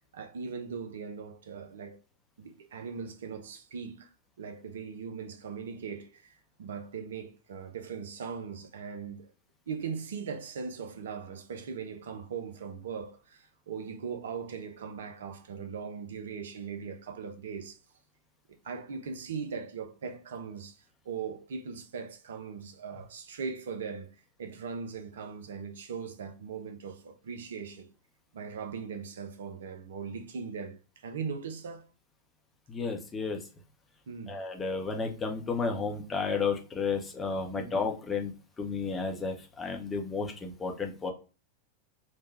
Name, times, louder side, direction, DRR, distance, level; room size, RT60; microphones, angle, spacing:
voice 1, 0.1-2.0 2.4-4.1 4.4-6.2 6.6-9.3 9.7-17.8 18.6-20.8 21.1-24.1 24.4-27.9 28.3-31.9 34.1-34.4 37.5-37.8, right 6 dB, 60° right, 0.4 m, -39 dB
voice 2, 32.7-33.4 34.3-41.1, left 4 dB, 15° left, 0.6 m, -32 dB
3.1 x 2.2 x 2.3 m
figure-of-eight pair, 90°, 0 cm